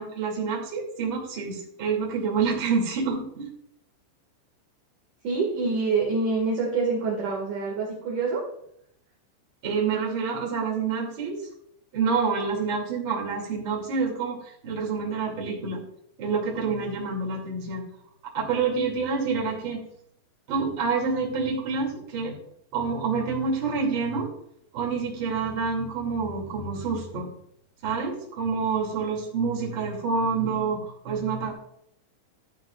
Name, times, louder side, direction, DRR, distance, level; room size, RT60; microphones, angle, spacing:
voice 1, 0.0-3.5 9.6-11.4 11.9-15.8 16.2-17.8 18.3-19.8 20.5-22.4 22.7-24.3 24.7-27.3 27.8-31.5, right 5 dB, 35° right, -2 dB, 2.2 m, -27 dB
voice 2, 5.2-8.4, right 4 dB, 50° right, -3 dB, 2.6 m, -26 dB
13.0 x 12.0 x 2.5 m, 0.71 s
omnidirectional pair, 5.9 m